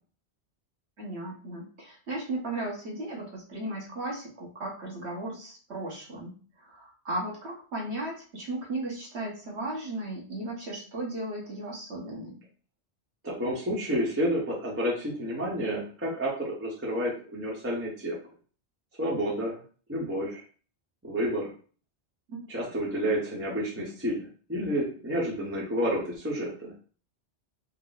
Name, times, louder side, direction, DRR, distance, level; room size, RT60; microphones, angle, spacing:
voice 1, 1.0-12.4 22.3-22.5, right 1 dB, 80° right, -2 dB, 1.5 m, -36 dB
voice 2, 13.2-18.2 19.0-19.6 19.9-20.4 21.0-21.5 22.5-26.7, equal, 15° right, -5 dB, 0.8 m, -30 dB
3.6 x 2.0 x 4.0 m, 0.40 s
omnidirectional pair, 1.1 m